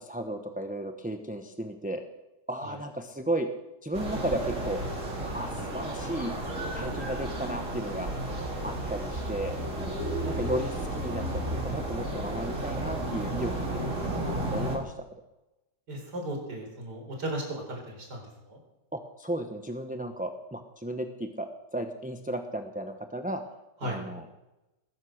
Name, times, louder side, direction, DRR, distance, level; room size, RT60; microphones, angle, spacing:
voice 1, 0.0-2.0 2.5-3.5 3.8-4.8 5.3-6.4 6.7-8.1 8.6-9.6 10.2-11.2 11.5-13.8 14.2-14.9 18.9-23.4 23.8-24.3, right 1 dB, 5° right, 6 dB, 0.7 m, -34 dB
sound 1, 3.9-14.8, right 1 dB, 45° right, 3.6 m, -33 dB
voice 2, 15.9-18.2 18.5-18.6 23.8-24.0, right 1 dB, 75° right, 2 dB, 4.6 m, -36 dB
20.5 x 11.0 x 6.5 m, 1.0 s
omnidirectional pair, 1.8 m